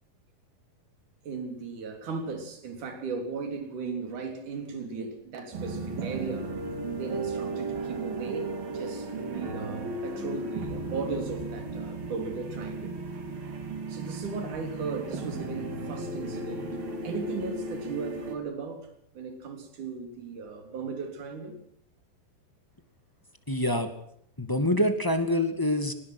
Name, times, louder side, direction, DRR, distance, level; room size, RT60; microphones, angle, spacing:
voice 1, 1.2-6.5 7.0-13.0 13.9-16.8 17.0-18.9 19.1-21.6, right 4 dB, 55° right, 5 dB, 5.1 m, -37 dB
sound 1, 5.5-18.4, right 3 dB, 75° right, 5.3 m, -35 dB
voice 2, 23.5-23.9 24.4-25.9, left 1 dB, 10° left, 7 dB, 1.5 m, -25 dB
23.5 x 20.5 x 6.3 m, 0.68 s
omnidirectional pair, 4.2 m